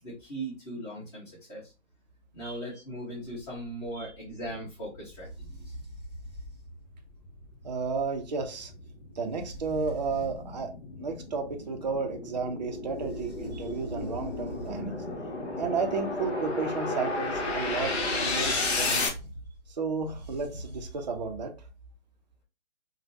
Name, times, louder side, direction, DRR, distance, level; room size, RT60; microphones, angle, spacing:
voice 1, 0.0-1.7 2.3-5.7, right 1 dB, 30° left, 1.3 m, -39 dB
sound 1, 5.0-19.1, left 2 dB, 60° left, 0.9 m, -33 dB
sound 2, 5.1-6.8 9.3-10.6 12.9-15.1 17.2-21.4, equal, 5° right, 1.0 m, -44 dB
voice 2, 7.6-8.7 9.2-10.7 11.0-15.0 15.6-19.0 19.8-21.5, right 4 dB, 35° right, 0.4 m, -32 dB
3.1 x 2.1 x 2.7 m
hypercardioid pair, 155°, 37 cm